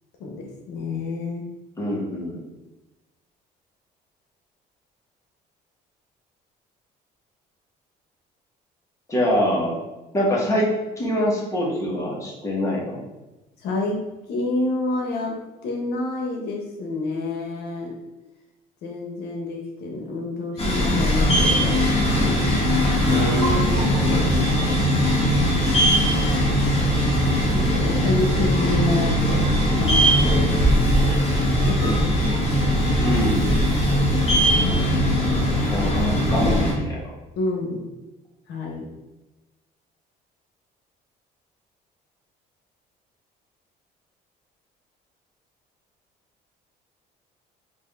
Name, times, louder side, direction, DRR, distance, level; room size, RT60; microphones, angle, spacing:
voice 1, 0.2-1.5 13.6-14.0 14.3-15.4 15.6-17.9 18.8-22.4 27.5-29.4 29.8-30.9 31.2-32.0 37.4-37.8 38.5-38.8, left 2 dB, 80° left, 0 dB, 0.8 m, -29 dB
voice 2, 1.8-2.4 9.1-9.8 10.1-10.7 11.0-13.0 23.1-23.8 24.6-24.7 32.9-33.5 35.7-37.1, equal, 20° left, -5 dB, 1.2 m, -25 dB
sound 1, 20.6-36.7, equal, 35° left, 1.1 m, -20 dB
3.5 x 2.5 x 3.4 m, 1.0 s
cardioid pair, 110°, 17 cm